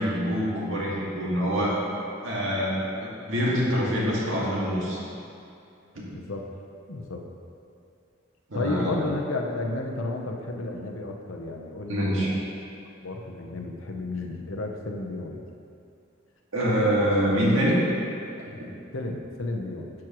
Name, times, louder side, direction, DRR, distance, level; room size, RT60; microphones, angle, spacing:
voice 1, 0.0-1.9 2.2-5.0 5.9-6.0 8.5-9.0 11.9-12.3 16.5-17.8 18.6-18.7, equal, 80° right, -5 dB, 2.0 m, -25 dB
voice 2, 6.1-6.5 6.9-7.2 8.5-12.4 13.0-15.4 18.9-19.9, left 2 dB, 90° left, 2 dB, 0.8 m, -32 dB
10.5 x 6.2 x 3.0 m, 2.6 s
head